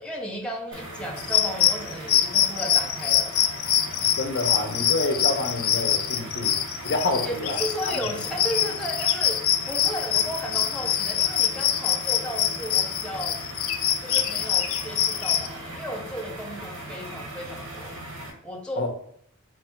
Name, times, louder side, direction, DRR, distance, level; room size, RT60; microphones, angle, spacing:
voice 1, 0.0-3.4 7.2-9.4 9.7-13.4 14.0-17.9 18.4-18.9, equal, 5° left, -1 dB, 0.7 m, -34 dB
sound 1, 0.7-18.3, right 1 dB, 75° right, 1.4 m, -39 dB
sound 2, 1.2-15.5, left 10 dB, 70° left, 0.4 m, -24 dB
voice 2, 4.0-6.6 6.8-7.6 7.9-8.0 18.8-18.9, left 2 dB, 50° left, 4 dB, 0.8 m, -28 dB
4.3 x 2.6 x 4.4 m, 0.66 s
head